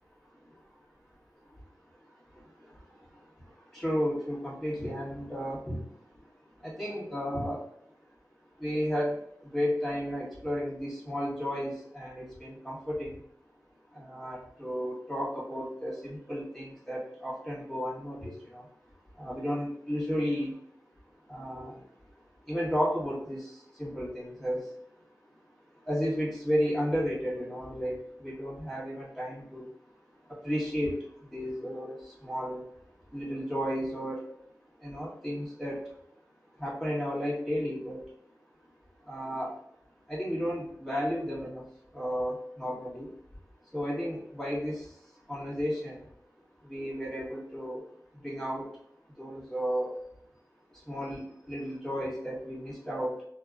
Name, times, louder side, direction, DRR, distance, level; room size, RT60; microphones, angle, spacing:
voice 1, 3.7-5.8 6.6-7.6 8.6-9.2 9.5-13.1 13.9-18.6 19.2-20.5 21.3-21.7 22.5-23.5 23.8-24.6 25.9-27.9 28.2-29.7 30.4-30.9 31.3-32.6 33.1-34.2 34.8-35.8 36.6-38.0 39.1-39.5 40.1-41.6 41.9-43.1 43.7-44.8 45.3-46.0 46.7-47.8 48.2-48.6 49.2-49.9 50.9-53.1, equal, 5° left, -7 dB, 1.4 m, -33 dB
3.2 x 2.2 x 2.4 m, 0.71 s
wide cardioid pair, 60°, 7 cm